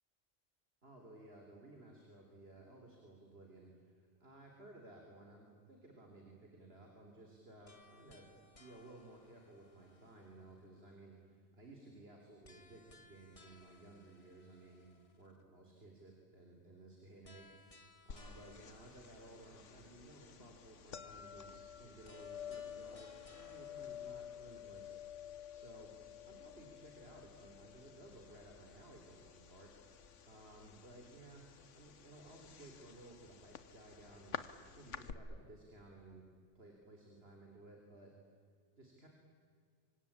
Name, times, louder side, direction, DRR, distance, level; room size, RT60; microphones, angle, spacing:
voice 1, 0.8-8.3 8.6-14.9 15.2-25.9 26.3-34.4 34.7-36.3 36.5-38.1 38.8-39.1, right 2 dB, 55° right, 2 dB, 3.9 m, -57 dB
sound 1, 7.7-10.8 12.4-15.4 17.2-20.4 22.0-25.5, left 2 dB, 30° left, 1.9 m, -64 dB
sound 2, 18.1-35.1, left 8 dB, 80° left, 1.5 m, -51 dB
27.0 x 25.0 x 8.7 m, 2.2 s
omnidirectional pair, 1.2 m